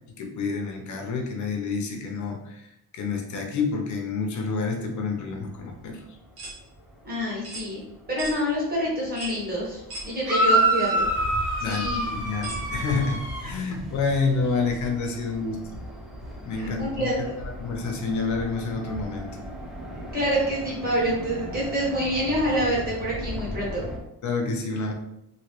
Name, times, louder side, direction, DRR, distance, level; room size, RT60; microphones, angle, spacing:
voice 1, 0.2-2.6 2.9-6.0 11.6-15.8 16.4-17.3 17.6-19.4 24.2-24.9, left 4 dB, 50° left, 3 dB, 0.6 m, -28 dB
sound 1, 4.8-24.0, equal, ahead, 0.3 m, -39 dB
sound 2, 6.4-6.6 7.4-7.7 8.2-8.4 9.2-9.4 9.9-10.1 10.9-11.0 12.4-12.6, right 2 dB, 70° right, 1.2 m, -37 dB
voice 2, 7.0-7.8 8.1-11.0 11.6-12.1 16.6-17.3 20.1-23.9, equal, 25° right, -5 dB, 1.1 m, -27 dB
sound 3, 10.3-13.5, right 2 dB, 55° right, 1.3 m, -25 dB
3.0 x 2.7 x 2.9 m, 0.81 s
cardioid pair, 180°, 38 cm